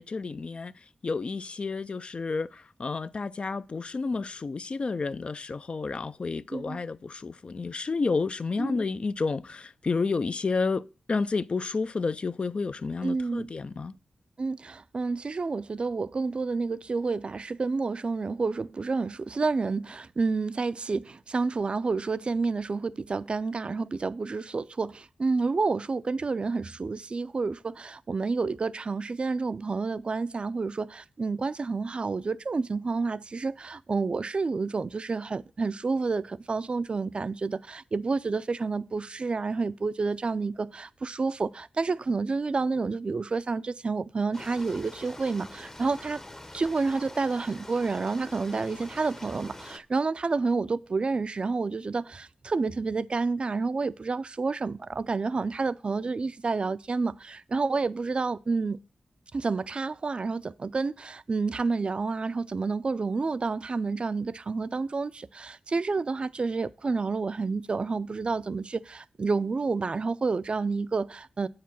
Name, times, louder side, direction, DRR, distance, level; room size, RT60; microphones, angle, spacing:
voice 1, 0.0-14.0, left 4 dB, 50° left, 0.4 m, -31 dB
voice 2, 6.5-6.8 8.6-8.8 13.0-13.5 14.4-46.2 46.5-58.8 59.3-71.5, right 4 dB, 50° right, 0.4 m, -29 dB
sound 1, 44.3-49.8, left 1 dB, 20° left, 0.7 m, -45 dB
8.2 x 4.7 x 5.9 m
cardioid pair, 60°, 2 cm